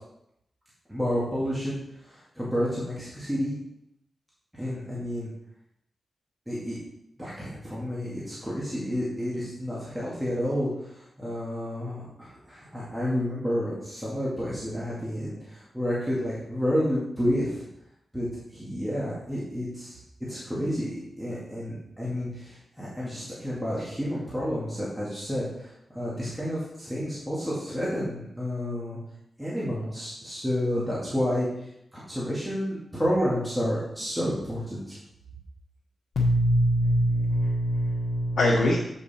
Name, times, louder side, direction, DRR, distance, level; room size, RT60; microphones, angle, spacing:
voice 1, 0.9-1.8 2.4-3.6 4.6-5.3 6.5-6.8 7.2-10.7 11.2-17.7 18.1-18.3 18.5-20.0 20.3-25.7 25.9-29.0 29.4-31.5 31.9-35.0, equal, 5° right, -8 dB, 2.2 m, -30 dB
voice 2, 36.1-38.8, equal, 65° left, -6 dB, 1.5 m, -23 dB
8.1 x 5.8 x 4.3 m, 0.78 s
wide cardioid pair, 155°, 0 cm